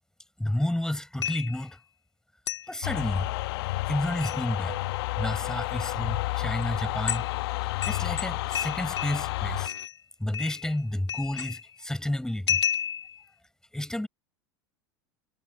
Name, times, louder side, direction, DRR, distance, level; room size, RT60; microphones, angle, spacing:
voice 1, 0.4-1.8 2.7-3.3 3.9-4.8 5.2-7.2 7.9-9.7 10.2-12.6 13.7-14.1, left 1 dB, 5° left, 7.0 m, -30 dB
sound 1, 1.2-1.7 2.5-2.7 4.0-4.4 5.7-5.9 6.6-6.7 7.1-7.4 7.8-9.3 9.6-10.0 10.3-10.8 11.1-11.7 12.5-13.2, left 8 dB, 85° left, 3.8 m, -32 dB
sound 2, 2.8-9.7, left 19 dB, 65° left, 1.5 m, -31 dB
figure-of-eight pair, 80°, 14 cm